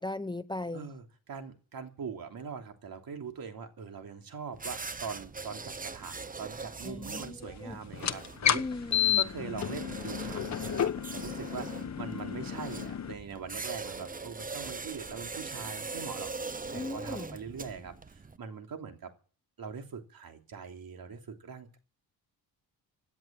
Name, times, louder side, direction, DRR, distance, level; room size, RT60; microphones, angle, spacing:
voice 1, 0.0-0.9 6.8-7.8 8.5-9.2 16.7-17.4, left 2 dB, 10° left, 0.7 m, -38 dB
voice 2, 0.7-8.6 9.2-19.1 19.6-21.8, right 6 dB, 60° right, 3.1 m, -42 dB
sound 1, 4.5-18.4, right 4 dB, 20° right, 0.9 m, -42 dB
sound 2, 7.9-13.1, left 9 dB, 40° left, 1.1 m, -31 dB
17.0 x 10.5 x 7.5 m
cardioid pair, 90°, 41 cm